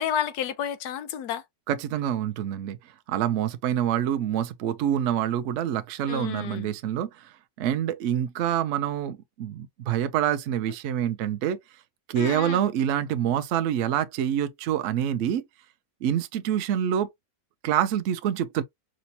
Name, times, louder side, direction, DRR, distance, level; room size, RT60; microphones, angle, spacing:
voice 1, 0.0-1.4 6.1-6.7 12.2-12.6, left 9 dB, 80° left, 1.1 m, -30 dB
voice 2, 1.7-2.8 3.1-11.6 12.1-15.4 16.0-17.1 17.6-18.6, right 10 dB, 70° right, 0.7 m, -26 dB
5.0 x 2.0 x 2.7 m
omnidirectional pair, 1.7 m